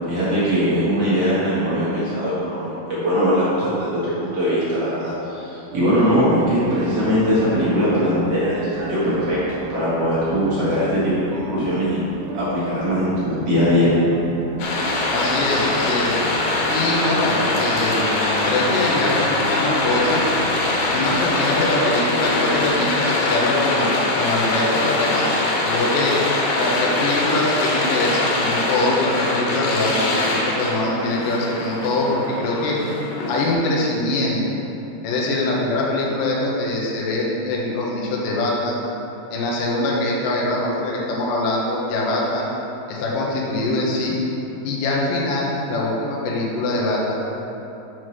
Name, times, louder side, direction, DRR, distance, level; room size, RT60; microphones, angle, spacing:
voice 1, 0.1-12.0 12.3-13.9, equal, 55° right, -10 dB, 1.7 m, -21 dB
sound 1, 5.7-22.8, right 6 dB, 90° right, 2.4 m, -35 dB
sound 2, 14.6-33.5, left 2 dB, 90° left, 3.7 m, -23 dB
voice 2, 15.1-16.1 16.7-18.1 18.4-20.2 20.9-26.2 26.6-32.8 33.3-34.4 35.0-38.8 39.3-42.5 42.9-44.2 44.6-47.1, left 2 dB, 70° left, -4 dB, 2.1 m, -23 dB
Bowed string instrument, 16.9-21.2, equal, 70° right, 3.5 m, -34 dB
7.9 x 4.7 x 6.2 m, 3.0 s
omnidirectional pair, 5.3 m